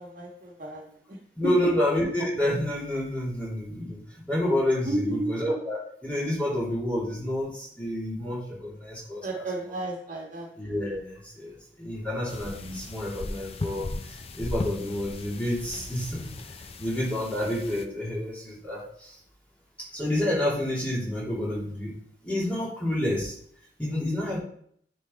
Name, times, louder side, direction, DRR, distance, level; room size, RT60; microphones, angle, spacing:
voice 1, 0.0-1.5 4.8-5.3 9.2-10.5, right 1 dB, 50° right, -1 dB, 1.5 m, -33 dB
voice 2, 1.4-9.4 10.6-16.3 16.8-19.2 19.9-21.9 22.2-23.3 23.8-24.4, left 1 dB, 10° left, -7 dB, 3.3 m, -29 dB
sound 1, 12.3-17.9, left 2 dB, 35° left, 0.6 m, -37 dB
9.5 x 3.9 x 4.1 m, 0.63 s
head